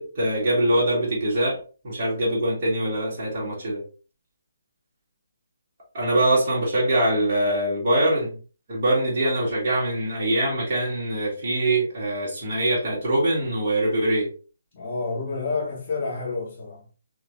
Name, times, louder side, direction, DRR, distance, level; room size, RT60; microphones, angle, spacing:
voice 1, 0.0-1.6 1.8-3.8 5.9-8.4 8.7-14.3, right 1 dB, 40° right, 1.8 m, -23 dB
voice 2, 14.7-16.8, left 4 dB, 35° left, 1.4 m, -29 dB
4.2 x 3.1 x 2.6 m
figure-of-eight pair, 140°, 0 cm